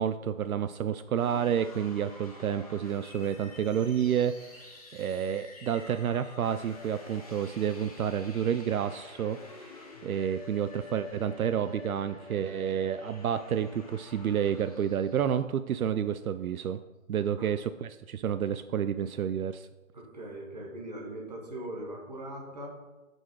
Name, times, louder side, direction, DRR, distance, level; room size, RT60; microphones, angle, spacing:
voice 1, 0.0-16.8 17.1-19.7, right 8 dB, 75° right, 12 dB, 0.5 m, -30 dB
sound 1, 1.1-15.3, left 3 dB, 25° left, 1.0 m, -49 dB
voice 2, 19.9-22.7, right 1 dB, 30° right, -1 dB, 1.3 m, -40 dB
7.1 x 5.5 x 4.5 m, 1.2 s
hypercardioid pair, 175°, 43 cm